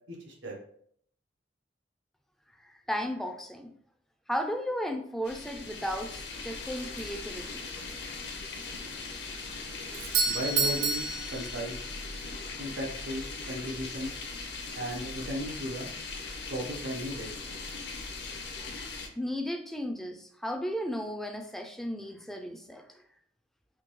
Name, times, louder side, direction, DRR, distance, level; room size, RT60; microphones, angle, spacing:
voice 1, 0.1-0.6 10.2-11.0 11.3-11.8 12.6-14.1 14.7-15.9 16.5-17.3, right 1 dB, 90° right, -1 dB, 1.0 m, -36 dB
voice 2, 2.9-3.7 4.3-7.7 19.2-22.9, equal, ahead, 5 dB, 0.3 m, -34 dB
sound 1, 5.2-19.1, left 3 dB, 60° left, 0.6 m, -40 dB
Doorbell, 9.9-12.1, right 4 dB, 55° right, 0.5 m, -30 dB
3.7 x 2.6 x 3.0 m, 0.65 s
head